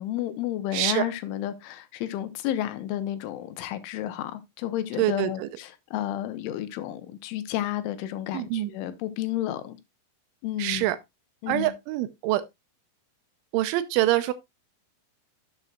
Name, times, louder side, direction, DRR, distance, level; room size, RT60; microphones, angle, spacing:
voice 1, 0.0-9.8 10.4-10.9 11.4-11.7, left 12 dB, 80° left, 3.2 m, -31 dB
voice 2, 0.7-1.0 5.0-5.5 8.3-8.7 10.6-11.0 11.5-12.4 13.5-14.3, right 15 dB, 80° right, 2.9 m, -25 dB
12.0 x 7.9 x 2.3 m
omnidirectional pair, 5.7 m